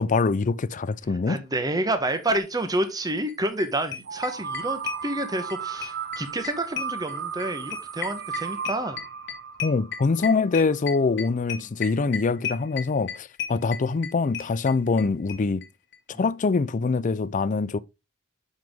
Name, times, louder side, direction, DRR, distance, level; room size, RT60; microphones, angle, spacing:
voice 1, 0.0-1.4 9.6-15.6 16.2-17.8, left 4 dB, 40° left, 0.4 m, -24 dB
voice 2, 1.3-9.0 11.5-11.7, right 1 dB, 20° right, 1.1 m, -29 dB
sound 1, 3.3-3.4 3.6-3.7 3.9-5.6 5.8-15.0 15.3-15.4 15.6-15.7 15.9-16.0, left 8 dB, 55° left, 1.4 m, -33 dB
sound 2, 4.0-10.8, right 6 dB, 55° right, 0.6 m, -35 dB
7.6 x 5.7 x 3.5 m
head